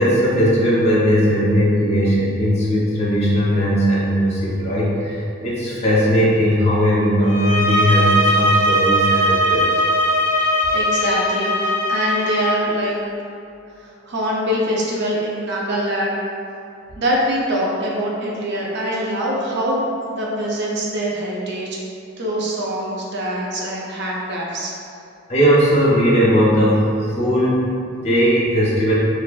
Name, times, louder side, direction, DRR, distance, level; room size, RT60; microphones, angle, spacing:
voice 1, 0.0-9.8 25.3-29.0, equal, 30° left, -7 dB, 0.5 m, -18 dB
sound 1, 7.2-12.6, equal, 80° left, 0.5 m, -19 dB
voice 2, 10.7-12.9 14.1-16.2 17.0-21.8 22.2-24.8, equal, 55° right, -4 dB, 0.4 m, -23 dB
2.5 x 2.2 x 2.3 m, 2.5 s
head